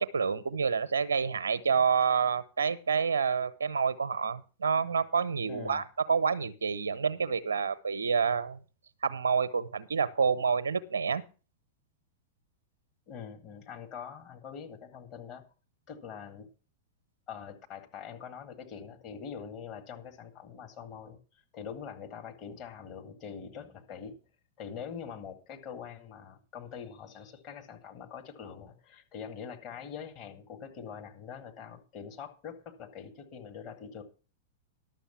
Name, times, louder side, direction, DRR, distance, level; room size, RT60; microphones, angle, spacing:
voice 1, 0.0-8.6 9.0-11.2, right 6 dB, 75° right, 0.7 m, -28 dB
voice 2, 5.5-5.8 13.1-15.4 15.9-16.5 17.3-24.2 24.6-34.0, left 7 dB, 35° left, 1.9 m, -44 dB
12.0 x 7.0 x 5.7 m
figure-of-eight pair, 100°, 0 cm